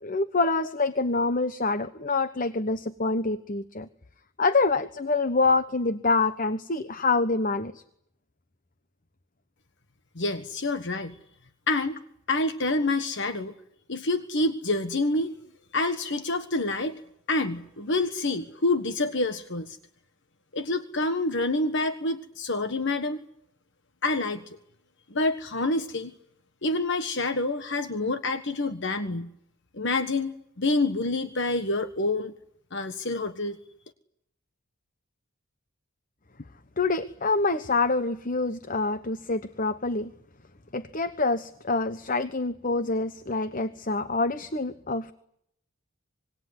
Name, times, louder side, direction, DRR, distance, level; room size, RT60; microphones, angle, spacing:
voice 1, 0.0-3.9 4.4-7.8 36.8-40.1 40.7-45.1, left 3 dB, 35° left, 12 dB, 1.1 m, -26 dB
voice 2, 10.1-11.1 11.7-12.0 12.3-13.5 13.9-15.3 15.7-17.0 17.3-19.8 20.5-23.2 24.0-24.4 25.1-26.1 26.6-29.3 29.7-32.3 32.7-33.6, left 2 dB, 55° left, 9 dB, 1.5 m, -27 dB
26.0 x 22.5 x 9.6 m, 0.73 s
head